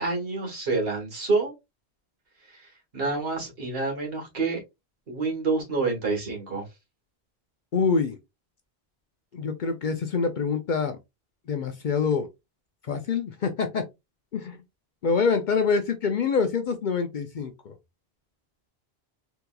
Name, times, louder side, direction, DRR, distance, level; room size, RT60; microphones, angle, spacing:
voice 1, 0.0-1.5 2.5-2.7 2.9-4.6 5.1-6.6, right 3 dB, 65° right, 1.6 m, -27 dB
voice 2, 7.7-8.2 9.3-11.0 11.5-12.3 12.9-13.8 14.3-14.6 15.0-17.7, left 5 dB, 55° left, 0.6 m, -25 dB
3.6 x 2.9 x 2.2 m
omnidirectional pair, 1.1 m